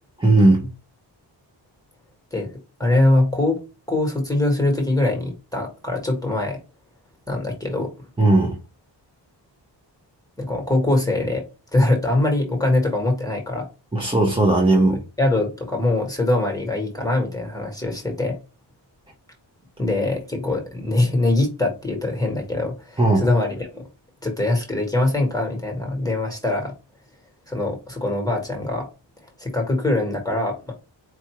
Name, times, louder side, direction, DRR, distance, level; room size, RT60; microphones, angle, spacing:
voice 1, 0.2-0.7 8.2-8.6 13.9-15.0 23.0-23.2, right 2 dB, 10° right, 0.7 m, -17 dB
voice 2, 2.8-3.6 3.9-6.6 7.3-7.9 10.4-11.4 11.7-13.7 14.9-18.4 19.8-23.8 24.2-26.7 27.5-28.9 29.4-30.7, left 2 dB, 10° left, 1.2 m, -22 dB
4.6 x 2.6 x 3.0 m
wide cardioid pair, 150°, 45 cm